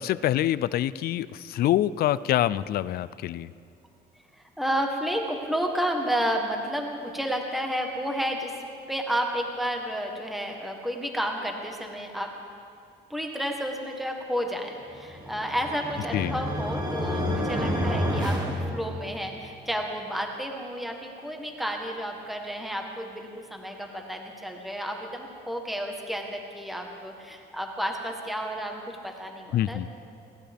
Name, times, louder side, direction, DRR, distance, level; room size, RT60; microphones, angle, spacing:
voice 1, 0.0-3.5 16.1-16.4 29.5-29.9, left 12 dB, 60° left, 17 dB, 0.4 m, -26 dB
voice 2, 4.4-8.6 8.9-12.3 13.1-29.9, equal, ahead, 2 dB, 1.2 m, -31 dB
sound 1, 15.1-19.4, equal, 20° right, 1.5 m, -29 dB
20.5 x 17.5 x 3.5 m, 2.4 s
cardioid pair, 165°, 18 cm